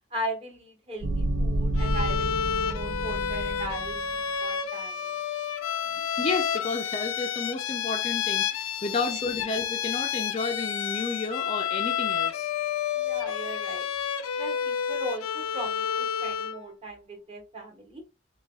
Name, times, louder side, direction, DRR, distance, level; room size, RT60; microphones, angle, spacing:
voice 1, 0.1-5.1 12.9-13.9 14.4-18.0, right 1 dB, 30° right, 1.1 m, -38 dB
sound 1, 1.0-4.1, right 1 dB, 65° right, 0.5 m, -29 dB
Bowed string instrument, 1.8-16.6, left 8 dB, 85° left, 0.4 m, -30 dB
voice 2, 6.2-12.5, left 3 dB, 30° left, 0.4 m, -31 dB
6.5 x 2.3 x 2.3 m
head